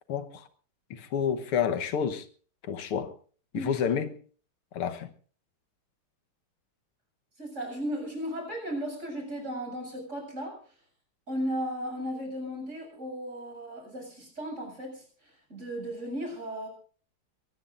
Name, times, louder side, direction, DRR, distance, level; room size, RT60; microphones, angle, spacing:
voice 1, 0.1-0.4 0.9-2.3 2.7-3.1 3.5-4.1 4.7-5.1, left 7 dB, 85° left, 2.1 m, -29 dB
voice 2, 7.4-10.6 11.3-16.7, equal, 30° right, 7.8 m, -35 dB
23.0 x 20.0 x 2.6 m
omnidirectional pair, 2.4 m